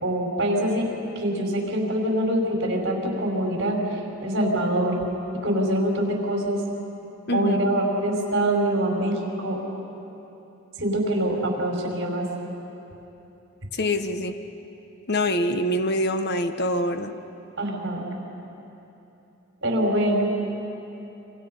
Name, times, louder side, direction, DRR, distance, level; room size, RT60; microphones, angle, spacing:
voice 1, 0.0-0.9 1.2-3.8 4.2-5.0 5.4-6.6 7.3-9.6 10.8-12.3 17.6-18.1 19.6-20.3, right 1 dB, 65° right, 0 dB, 5.2 m, -24 dB
voice 2, 13.7-14.4 15.1-17.1, left 1 dB, 55° left, 7 dB, 1.3 m, -24 dB
27.5 x 26.5 x 5.6 m, 3.0 s
head